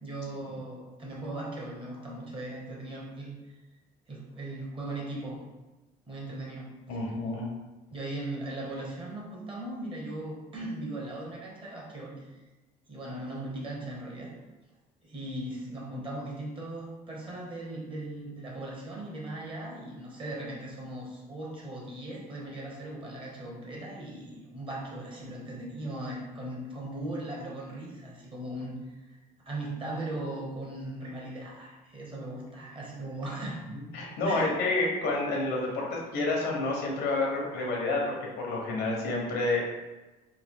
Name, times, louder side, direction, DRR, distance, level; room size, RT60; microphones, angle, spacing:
voice 1, 0.0-3.3 4.1-5.4 6.1-6.7 7.9-12.3 12.9-14.3 15.0-28.9 29.5-33.6 34.2-34.5, right 1 dB, 30° right, -3 dB, 1.0 m, -38 dB
voice 2, 6.9-7.5 33.7-39.6, left 2 dB, 85° left, -2 dB, 1.0 m, -29 dB
3.4 x 2.3 x 3.6 m, 1.1 s
cardioid pair, 110°, 17 cm